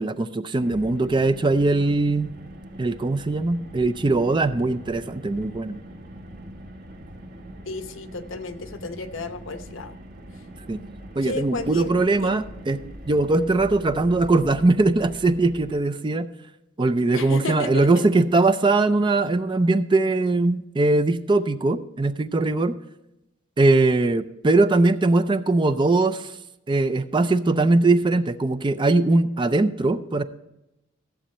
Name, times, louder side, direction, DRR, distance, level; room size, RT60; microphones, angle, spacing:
voice 1, 0.0-2.3 2.8-5.8 10.7-10.8 11.2-16.3 16.8-22.8 23.6-26.3 26.7-30.2, right 2 dB, 25° right, 12 dB, 0.4 m, -21 dB
Car, 0.6-15.8, equal, 50° right, 1.3 m, -42 dB
voice 2, 7.7-10.0 11.2-11.9 12.2-12.4 17.1-18.1, left 2 dB, 70° left, 9 dB, 0.9 m, -33 dB
14.5 x 7.7 x 4.3 m, 0.90 s
head